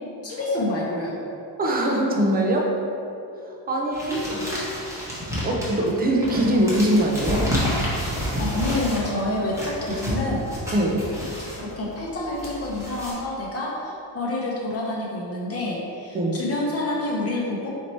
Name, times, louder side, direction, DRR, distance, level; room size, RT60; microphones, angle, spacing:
voice 1, 0.2-1.2 4.0-4.6 8.4-10.5 11.6-17.7, left 2 dB, 30° left, -4 dB, 0.7 m, -28 dB
voice 2, 1.6-2.7 3.7-4.4 5.4-7.5 10.7-11.0 16.1-16.4, right 1 dB, 20° right, 0 dB, 0.4 m, -22 dB
sound 1, 3.9-13.1, equal, 5° right, 0.8 m, -30 dB
4.4 x 2.8 x 4.2 m, 2.7 s
cardioid pair, 155°, 48 cm